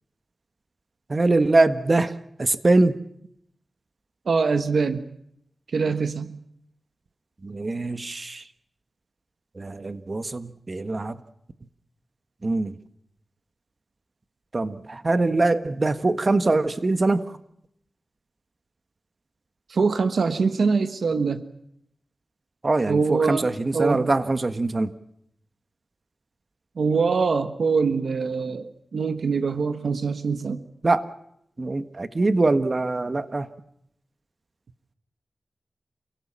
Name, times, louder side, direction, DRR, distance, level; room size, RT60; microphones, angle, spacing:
voice 1, 1.1-2.1 2.4-3.0 7.4-8.4 9.6-11.2 12.4-12.7 14.5-17.2 22.6-24.9 30.8-31.1 31.6-33.5, right 2 dB, 45° right, 11 dB, 1.4 m, -23 dB
voice 2, 4.3-5.0 5.7-6.4 19.7-21.4 22.9-24.1 26.8-30.6, right 4 dB, 80° right, 9 dB, 1.2 m, -24 dB
29.0 x 17.0 x 7.4 m, 0.75 s
cardioid pair, 50°, 0 cm